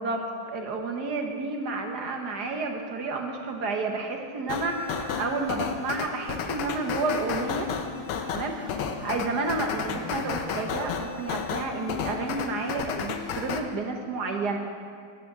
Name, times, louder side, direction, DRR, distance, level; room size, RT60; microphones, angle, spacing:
voice 1, 0.0-7.7 8.3-14.6, right 3 dB, 55° right, 3 dB, 1.6 m, -31 dB
sound 1, 4.5-13.6, left 6 dB, 90° left, 1.7 m, -32 dB
11.5 x 9.3 x 7.4 m, 2.2 s
omnidirectional pair, 2.3 m